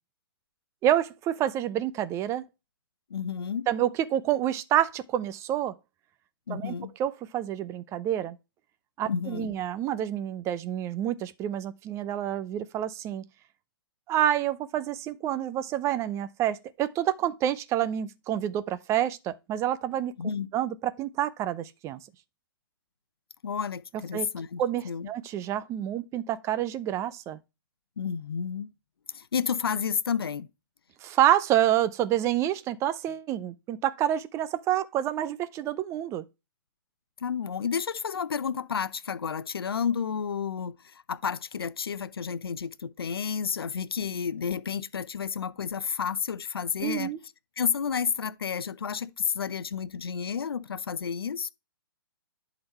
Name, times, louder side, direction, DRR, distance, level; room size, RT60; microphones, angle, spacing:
voice 1, 0.8-2.4 3.7-5.7 6.5-6.7 7.0-8.4 9.0-13.2 14.1-20.1 20.5-22.0 24.1-24.3 24.6-27.4 31.0-36.2 46.8-47.2, right 11 dB, 25° right, 0.6 m, -28 dB
voice 2, 3.1-3.7 6.5-6.9 9.1-9.5 20.2-20.5 23.4-25.1 28.0-28.7 29.1-30.5 37.2-47.1 47.6-51.5, left 7 dB, 80° left, 0.7 m, -31 dB
11.0 x 4.1 x 4.3 m
hypercardioid pair, 130°, 12 cm